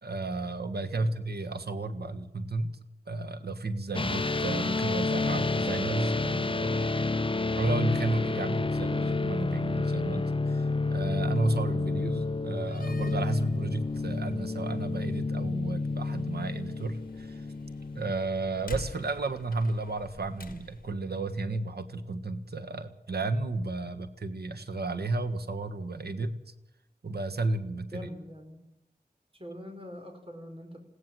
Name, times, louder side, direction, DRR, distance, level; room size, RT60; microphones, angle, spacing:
voice 1, 0.0-2.8 3.1-6.9 7.5-17.5 17.9-26.3 27.0-28.0, right 2 dB, 85° right, 8 dB, 1.7 m, -32 dB
voice 2, 0.8-1.1 27.9-28.6 29.3-30.8, left 1 dB, 35° right, 5 dB, 4.7 m, -43 dB
sound 1, 3.9-18.1, left 3 dB, 35° left, 0.7 m, -30 dB
Slam, 12.5-21.0, left 4 dB, 60° left, 1.7 m, -48 dB
21.0 x 16.5 x 7.8 m, 0.87 s
wide cardioid pair, 80°, 16 cm